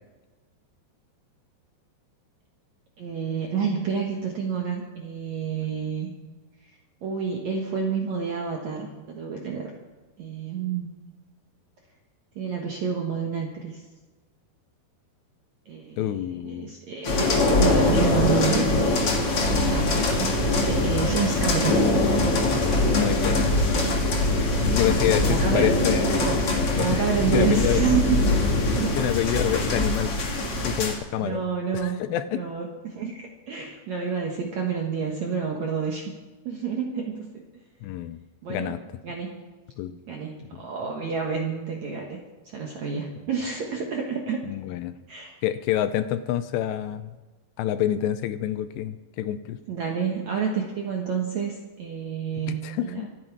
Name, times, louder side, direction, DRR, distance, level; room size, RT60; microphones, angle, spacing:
voice 1, 3.0-6.1 7.0-9.7 10.2-10.9 12.4-13.8 15.7-20.3 20.6-21.8 24.6-25.7 26.2-28.3 28.7-29.0 29.5-29.8 31.2-32.0 32.3-36.1 36.5-37.4 38.4-38.8 39.0-39.4 40.1-42.2 42.4-44.4 45.1-45.4 49.7-53.1, right 6 dB, 65° right, 0 dB, 1.8 m, -29 dB
voice 2, 16.0-16.7 22.9-23.9 24.6-26.1 26.8-27.0 27.3-27.8 28.3-28.4 29.0-30.1 30.6-31.4 31.7-32.4 37.8-38.2 38.5-38.8 39.8-40.0 44.4-44.9 45.4-47.1 47.6-49.6 52.5-53.1, left 11 dB, 80° left, 12 dB, 2.6 m, -27 dB
sound 1, 17.0-30.9, left 2 dB, 40° left, 2.5 m, -22 dB
25.0 x 9.1 x 4.7 m, 1.2 s
omnidirectional pair, 5.2 m